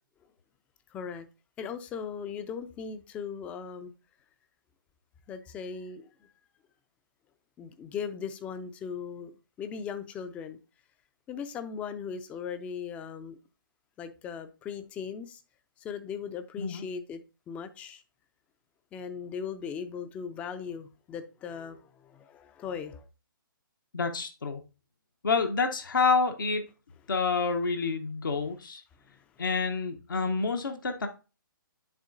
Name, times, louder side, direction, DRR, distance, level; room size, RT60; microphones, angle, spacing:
voice 1, 0.9-1.3 1.6-3.9 5.3-6.3 7.6-9.3 9.6-10.6 11.3-13.4 14.0-15.4 15.8-17.2 17.5-18.0 18.9-23.1 29.1-29.2, left 6 dB, 10° left, 0.4 m, -38 dB
voice 2, 23.9-24.6 25.2-26.6 27.1-28.8 29.4-31.1, left 4 dB, 70° left, 0.8 m, -28 dB
10.5 x 3.6 x 2.5 m
figure-of-eight pair, 135°, 12 cm